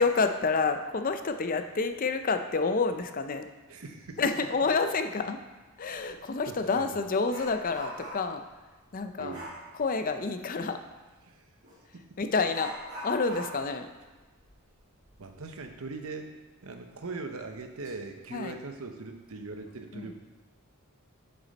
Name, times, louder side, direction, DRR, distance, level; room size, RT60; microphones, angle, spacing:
voice 1, 0.0-3.5 4.2-5.4 5.8-8.4 8.9-9.4 9.8-10.8 12.2-12.7 13.0-13.9 18.3-18.5 19.9-20.1, left 4 dB, 40° left, 8 dB, 0.5 m, -28 dB
voice 2, 3.7-4.2 6.1-6.2 6.4-6.9 9.2-9.5 11.2-11.4 11.9-12.2 15.2-16.3 16.6-20.1, right 3 dB, 70° right, 5 dB, 0.9 m, -40 dB
Dog, 5.9-6.1 6.5-8.4 9.3-9.7 11.6-11.8 12.5-15.8 16.1-16.2 16.7-16.8 17.5-17.9 18.3-18.5, equal, 55° right, 2.5 m, -43 dB
7.5 x 6.9 x 4.1 m, 1.3 s
head